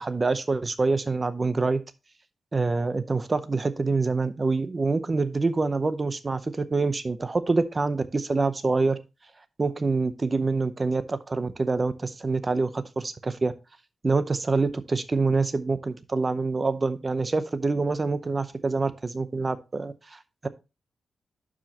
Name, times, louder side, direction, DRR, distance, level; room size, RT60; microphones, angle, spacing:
voice 1, 0.0-1.8 2.5-9.0 9.6-13.5 14.0-20.5, right 3 dB, 30° right, 12 dB, 0.7 m, -26 dB
11.5 x 4.9 x 2.9 m, 0.28 s
wide cardioid pair, 145°, 0 cm